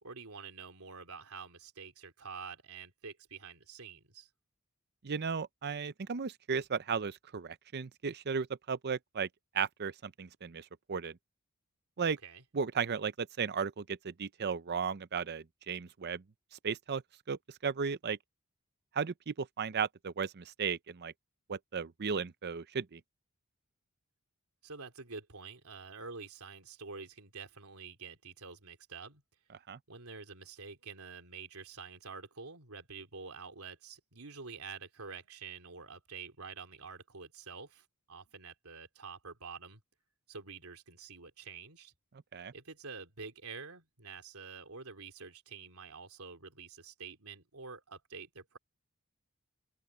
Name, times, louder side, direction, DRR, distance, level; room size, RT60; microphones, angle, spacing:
voice 1, 0.0-4.3 12.2-12.4 24.6-29.2 29.9-39.8 40.3-41.9 42.5-48.6, right 5 dB, 90° right, 3.3 m, -48 dB
voice 2, 5.0-9.3 9.5-11.2 12.0-12.2 12.5-16.2 16.6-17.0 17.3-18.2 18.9-21.1 21.5-23.0 29.7-29.8 42.3-42.5, right 6 dB, 50° right, 0.6 m, -35 dB
open air
head